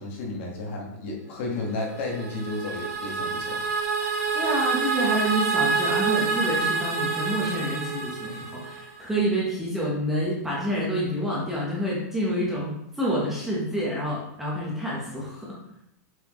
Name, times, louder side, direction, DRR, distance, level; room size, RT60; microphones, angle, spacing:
voice 1, 0.0-3.6, left 2 dB, 45° left, -1 dB, 1.6 m, -32 dB
sound 1, 1.9-9.0, right 4 dB, 60° right, 2.0 m, -27 dB
voice 2, 4.3-15.6, equal, 5° right, -6 dB, 1.0 m, -28 dB
7.1 x 4.2 x 3.1 m, 0.80 s
supercardioid pair, 170°, 9 cm